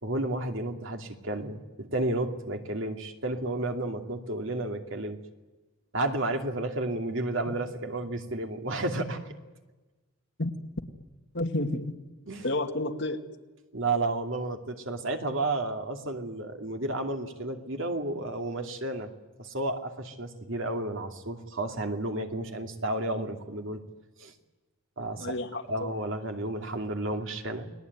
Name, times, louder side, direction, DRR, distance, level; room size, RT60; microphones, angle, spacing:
voice 1, 0.0-5.2 5.9-9.2 12.3-12.5 13.7-19.1 19.4-23.8 24.2-24.3 25.0-25.3 25.7-27.6, right 2 dB, 60° right, 5 dB, 2.6 m, -32 dB
voice 2, 11.3-11.9 12.4-13.2 25.2-25.9, left 1 dB, 55° left, 4 dB, 2.4 m, -30 dB
30.0 x 20.5 x 9.6 m, 1.2 s
head